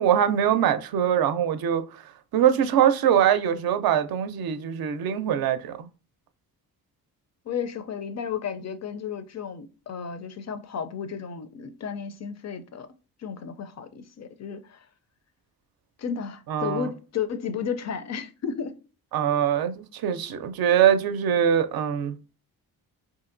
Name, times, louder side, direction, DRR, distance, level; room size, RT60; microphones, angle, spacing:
voice 1, 0.0-1.8 2.3-5.9 16.5-16.9 19.1-22.2, right 9 dB, 65° right, 0.5 m, -23 dB
voice 2, 7.5-12.9 13.2-14.9 16.0-18.8, left 7 dB, 45° left, 0.4 m, -33 dB
2.8 x 2.7 x 2.5 m
cardioid pair, 70°, 39 cm